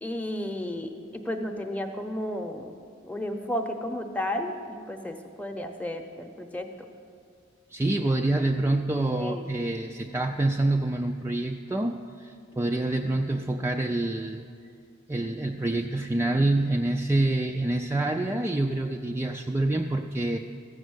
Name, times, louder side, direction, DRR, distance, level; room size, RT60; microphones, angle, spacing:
voice 1, 0.0-2.7 3.0-6.7 9.1-9.5, left 1 dB, 10° left, 5 dB, 0.8 m, -33 dB
voice 2, 7.7-14.4 15.1-20.4, right 2 dB, 15° right, 3 dB, 0.3 m, -26 dB
14.0 x 6.4 x 7.9 m, 2.3 s
head